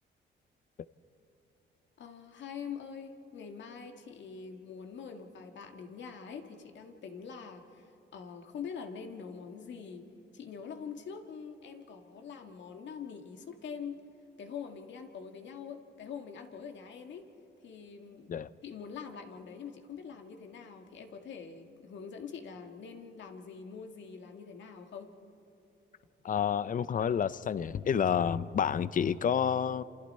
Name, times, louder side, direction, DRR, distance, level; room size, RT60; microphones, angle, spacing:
voice 1, 2.0-10.1 10.3-14.0 14.4-17.3 17.6-18.3 18.6-25.1, left 6 dB, 65° left, 5 dB, 2.0 m, -44 dB
voice 2, 26.2-29.8, left 8 dB, 40° left, 17 dB, 0.6 m, -29 dB
28.5 x 27.0 x 4.4 m, 2.9 s
cardioid pair, 90°, 20 cm